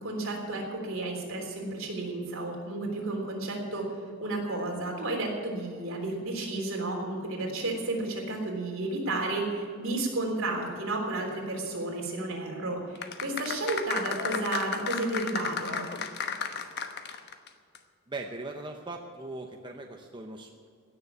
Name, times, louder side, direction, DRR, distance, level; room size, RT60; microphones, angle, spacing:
voice 1, 0.0-3.9 4.2-15.8, right 2 dB, 65° right, 0 dB, 3.6 m, -32 dB
sound 1, 13.0-17.5 17.8-17.9, left 6 dB, 50° left, 1.0 m, -33 dB
voice 2, 18.1-20.7, right 2 dB, 20° right, 3 dB, 0.7 m, -40 dB
16.5 x 6.9 x 9.9 m, 2.2 s
head